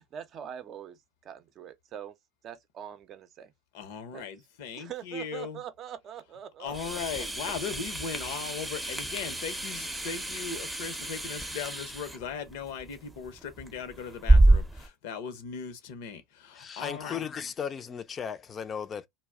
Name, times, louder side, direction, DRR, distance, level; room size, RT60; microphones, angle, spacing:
voice 1, 0.0-2.1 2.4-3.5 4.1-4.3 4.8-7.3, right 9 dB, 45° right, 0.5 m, -43 dB
voice 2, 3.7-5.6 6.6-17.2, left 6 dB, 65° left, 0.7 m, -38 dB
sound 1, 6.7-14.9, right 2 dB, 5° right, 0.6 m, -28 dB
voice 3, 16.5-19.1, left 7 dB, 35° left, 0.5 m, -36 dB
2.3 x 2.1 x 3.4 m
hypercardioid pair, 80°, 0 cm